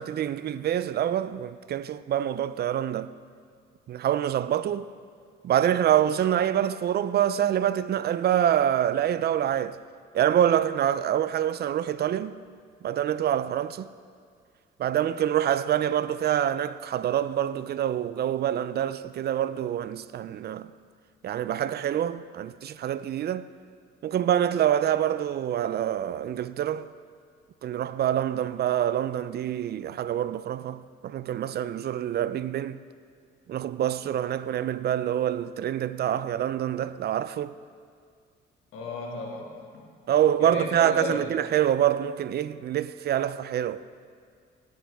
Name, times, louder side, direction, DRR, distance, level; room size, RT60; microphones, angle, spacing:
voice 1, 0.0-3.1 3.9-4.9 5.4-9.8 10.1-12.4 12.8-13.9 14.8-20.7 21.2-23.5 24.0-26.9 27.6-32.8 33.5-37.6 40.1-43.8, right 10 dB, 55° right, 0.5 m, -26 dB
voice 2, 38.7-39.9 40.4-41.3, left 3 dB, 90° left, 2.0 m, -34 dB
17.5 x 9.2 x 3.5 m
cardioid pair, 90°, 20 cm